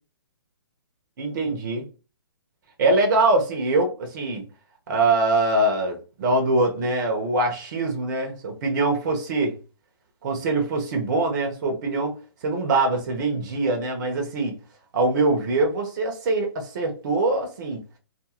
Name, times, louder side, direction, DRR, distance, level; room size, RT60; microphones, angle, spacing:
voice 1, 1.2-1.9 2.8-4.5 4.9-9.5 10.2-12.2 12.4-14.6 14.9-17.8, right 2 dB, 50° right, 0.8 m, -23 dB
2.5 x 2.4 x 2.9 m
hypercardioid pair, 140°, 13 cm